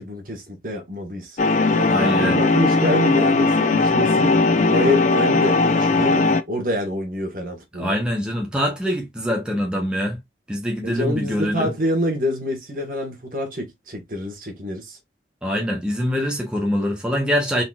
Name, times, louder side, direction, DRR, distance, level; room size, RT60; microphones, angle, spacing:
voice 1, 0.0-1.4 1.7-8.0 10.8-15.0, left 1 dB, 50° right, 1.3 m, -26 dB
sound 1, 1.4-6.4, left 3 dB, 40° left, 0.4 m, -18 dB
voice 2, 1.9-2.4 7.8-10.2 10.5-11.7 15.4-17.6, equal, 5° right, 0.8 m, -24 dB
3.9 x 3.8 x 2.3 m
head